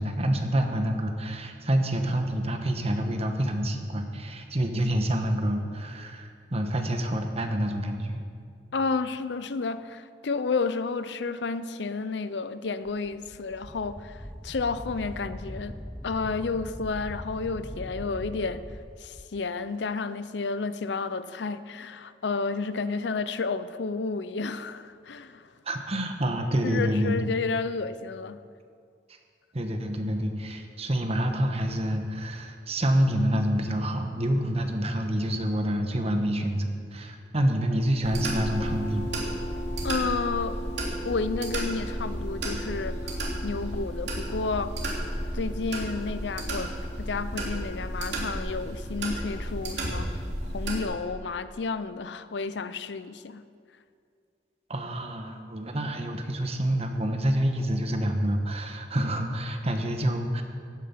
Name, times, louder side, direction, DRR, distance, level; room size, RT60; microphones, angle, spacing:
voice 1, 0.0-8.2 25.6-27.3 29.5-39.1 54.7-60.4, equal, 35° right, 5 dB, 1.2 m, -27 dB
voice 2, 8.7-15.8 16.0-18.6 19.0-25.5 26.6-28.4 39.8-44.8 45.3-50.2 50.4-53.4, left 4 dB, 75° left, 14 dB, 0.6 m, -31 dB
Wind, 12.8-19.3, equal, 5° left, 0.6 m, -41 dB
sound 1, 38.0-50.8, right 1 dB, 75° right, 2.9 m, -32 dB
15.0 x 9.1 x 5.9 m, 2.2 s
head